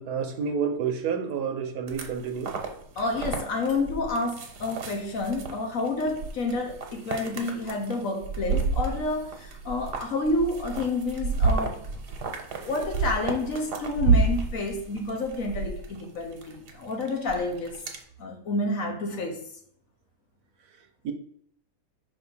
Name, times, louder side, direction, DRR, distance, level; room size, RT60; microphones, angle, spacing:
voice 1, 0.0-2.5 21.0-21.1, right 6 dB, 70° right, 1.2 m, -29 dB
sound 1, 1.9-18.0, right 4 dB, 90° right, 1.5 m, -30 dB
voice 2, 3.0-11.8 12.6-17.8 18.2-19.4, left 2 dB, 60° left, 1.3 m, -29 dB
5.3 x 3.5 x 5.4 m
omnidirectional pair, 1.7 m